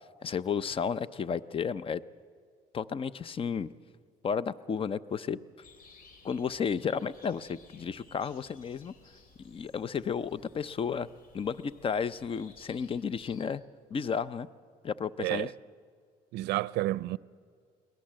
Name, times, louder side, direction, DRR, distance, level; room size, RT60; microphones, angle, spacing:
voice 1, 0.2-2.0 2.7-3.7 4.2-5.4 6.2-8.9 9.4-11.1 11.3-13.6 13.9-14.5 14.8-15.5, left 6 dB, 30° left, 0.6 m, -32 dB
sound 1, 5.6-13.4, left 3 dB, 60° left, 3.1 m, -58 dB
voice 2, 15.2-15.5 16.3-17.2, right 17 dB, 80° right, 0.5 m, -30 dB
23.0 x 18.0 x 7.6 m
cardioid pair, 110°, 17 cm